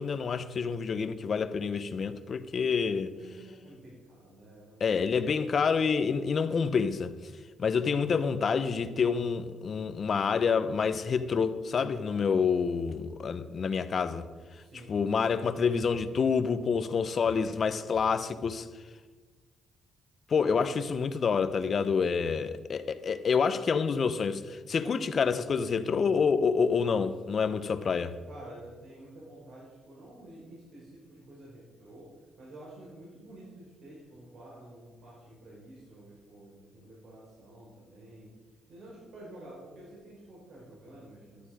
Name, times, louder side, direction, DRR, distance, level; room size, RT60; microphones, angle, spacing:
voice 1, 0.0-3.1 4.8-7.1 7.6-14.3 14.9-18.7 20.3-28.1, left 5 dB, 45° left, 1.0 m, -28 dB
voice 2, 3.1-4.8 14.6-15.0 28.2-41.5, right 1 dB, 60° right, 5.2 m, -50 dB
14.0 x 11.5 x 5.1 m
cardioid pair, 90°, 0 cm